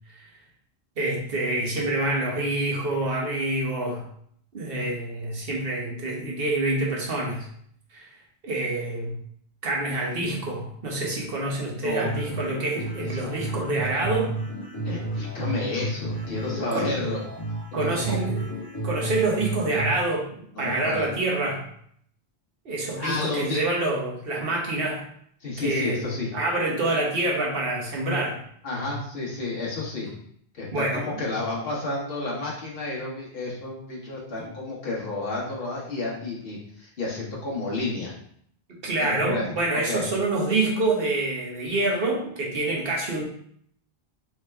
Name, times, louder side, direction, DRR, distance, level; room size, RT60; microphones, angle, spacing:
voice 1, 1.0-4.0 4.5-7.5 7.9-8.0 8.4-9.1 9.6-14.3 16.6-16.9 17.7-18.5 18.8-21.6 22.6-25.0 25.6-28.4 30.7-31.3 34.4-34.5 38.7-43.2, right 2 dB, 65° right, -2 dB, 1.2 m, -27 dB
sound 1, 12.0-20.0, right 2 dB, 30° left, 1.1 m, -32 dB
voice 2, 14.8-17.2 17.8-18.2 20.5-21.1 23.0-23.6 25.4-26.3 28.6-30.1 30.6-38.1 39.0-39.4 39.9-40.0, left 2 dB, 65° left, -5 dB, 1.2 m, -31 dB
3.4 x 3.1 x 3.3 m, 0.65 s
omnidirectional pair, 1.1 m